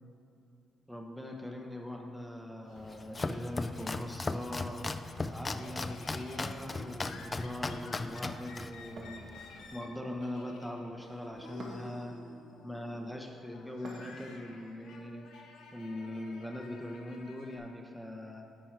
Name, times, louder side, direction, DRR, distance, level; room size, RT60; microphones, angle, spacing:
voice 1, 0.9-4.9 5.3-12.3 12.6-18.4, left 1 dB, ahead, 1 dB, 0.7 m, -41 dB
Laughter, 2.2-4.3 4.7-17.6, left 4 dB, 85° left, 0.8 m, -53 dB
Domestic sounds home sounds, 2.8-9.7, left 3 dB, 25° left, 0.3 m, -38 dB
sound 1, 6.4-7.3 9.0-9.9 11.6-12.2 13.8-14.5, right 1 dB, 60° right, 1.2 m, -49 dB
9.0 x 4.6 x 4.6 m, 2.6 s
cardioid pair, 90°, 0 cm